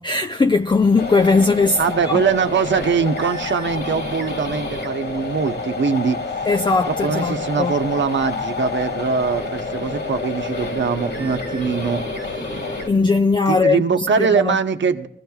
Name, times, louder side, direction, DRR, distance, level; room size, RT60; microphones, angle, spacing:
voice 1, 0.0-2.2 6.5-7.7 12.9-14.6, left 3 dB, 20° left, 0.4 m, -19 dB
sound 1, 1.0-12.9, left 3 dB, 55° left, 2.2 m, -28 dB
voice 2, 1.8-6.2 6.9-12.0 13.5-15.1, right 6 dB, 60° right, 1.0 m, -22 dB
21.5 x 15.5 x 2.4 m
cardioid pair, 85°, 21 cm